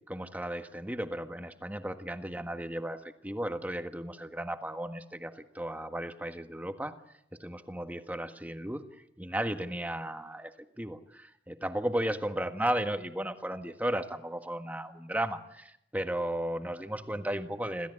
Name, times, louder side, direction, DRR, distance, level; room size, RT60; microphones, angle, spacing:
voice 1, 0.0-7.0 7.4-17.9, right 1 dB, 10° right, 7 dB, 1.5 m, -35 dB
27.0 x 16.5 x 9.8 m, 0.75 s
head